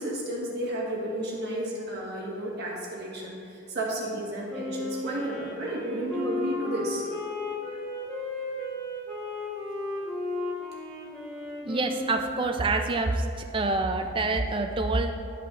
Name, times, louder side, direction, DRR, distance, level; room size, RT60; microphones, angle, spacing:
voice 1, 0.0-7.0 7.7-7.8, right 1 dB, 50° right, -4 dB, 1.4 m, -32 dB
Wind instrument woodwind instrument, 4.5-12.6, left 2 dB, 5° left, 1.2 m, -34 dB
voice 2, 11.6-13.3 13.5-15.1, right 2 dB, 25° right, 5 dB, 0.4 m, -26 dB
11.5 x 5.8 x 2.4 m, 2.4 s
head